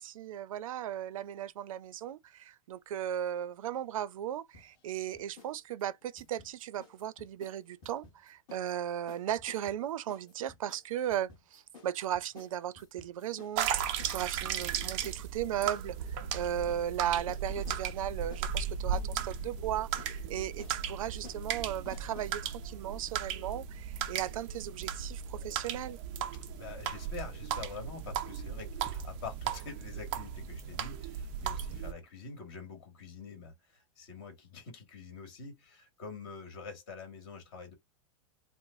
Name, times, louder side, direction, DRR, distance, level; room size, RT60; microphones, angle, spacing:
voice 1, 0.0-13.7 14.1-26.0, right 11 dB, 80° right, 0.5 m, -36 dB
sound 1, 4.5-5.5 5.8-8.7 9.1-22.4, left 5 dB, 25° left, 1.1 m, -55 dB
sound 2, 13.6-31.9, right 8 dB, 25° right, 0.3 m, -36 dB
voice 2, 26.6-37.7, left 4 dB, 45° left, 1.8 m, -46 dB
4.8 x 2.0 x 2.5 m
supercardioid pair, 170°, 17 cm